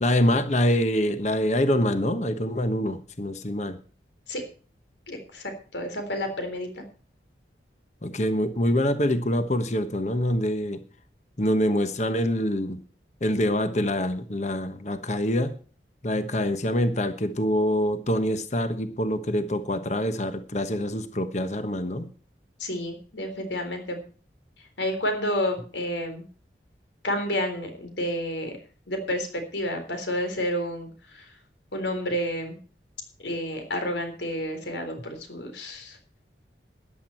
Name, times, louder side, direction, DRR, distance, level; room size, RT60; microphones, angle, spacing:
voice 1, 0.0-3.8 8.0-10.8 11.4-12.8 13.2-15.5 16.0-22.1, left 1 dB, 40° left, 10 dB, 1.2 m, -25 dB
voice 2, 5.1-6.8 22.6-24.0 24.8-26.3 27.0-28.6 28.9-31.3 31.7-32.6 33.2-36.0, equal, 90° left, 6 dB, 3.8 m, -30 dB
14.0 x 10.5 x 4.5 m, 0.39 s
head